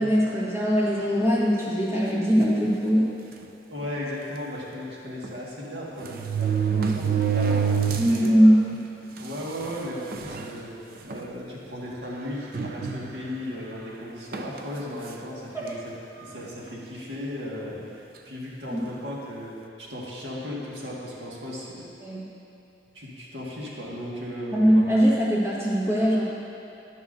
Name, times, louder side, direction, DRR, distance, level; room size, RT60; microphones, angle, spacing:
voice 1, 0.0-3.1 8.0-8.6 15.5-15.7 18.7-18.8 22.0-22.2 24.5-26.2, equal, 15° right, -7 dB, 1.4 m, -21 dB
sound 1, 2.4-2.7 3.4-3.5 3.8-3.9 5.2-5.3 6.0-8.3 8.7-8.8 9.6-9.7 10.1-10.5 11.1-11.3 12.5-13.4 14.3-14.6, right 6 dB, 55° right, 0.5 m, -26 dB
voice 2, 3.7-8.5 9.2-10.7 11.0-21.9 22.9-24.9, equal, 80° right, -5 dB, 1.8 m, -36 dB
11.0 x 11.0 x 2.7 m, 2.9 s
head